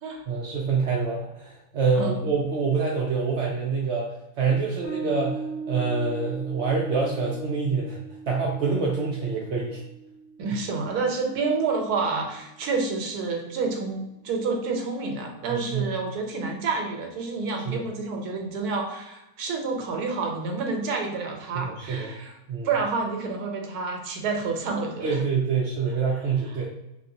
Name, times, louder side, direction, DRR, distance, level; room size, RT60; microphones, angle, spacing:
voice 1, 0.3-4.1 4.4-8.0 8.3-9.8 15.5-15.9 17.5-17.8 21.5-22.1 22.5-22.7 25.0-26.7, right 4 dB, 70° right, -2 dB, 0.6 m, -26 dB
voice 2, 1.9-2.3 10.4-22.4 22.6-25.2 26.6-26.7, right 4 dB, 90° right, 2 dB, 1.1 m, -29 dB
Bass guitar, 4.8-12.0, right 5 dB, 55° left, 0.9 m, -39 dB
3.3 x 2.5 x 2.6 m, 0.92 s
omnidirectional pair, 1.6 m